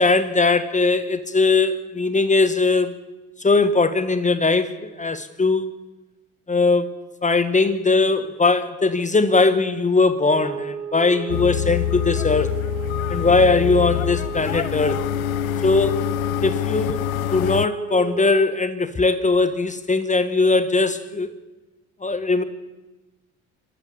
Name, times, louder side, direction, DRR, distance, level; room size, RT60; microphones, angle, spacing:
voice 1, 0.0-3.0 3.4-5.7 6.5-7.0 7.2-12.5 13.1-15.0 15.6-16.0 16.4-17.0 17.3-21.3 22.0-22.4, left 3 dB, 15° left, 1.4 m, -20 dB
sound 1, 10.3-18.6, right 7 dB, 80° right, 1.0 m, -34 dB
sound 2, 11.3-17.7, left 18 dB, 75° left, 0.6 m, -26 dB
25.5 x 13.5 x 8.6 m
figure-of-eight pair, 55°, 43 cm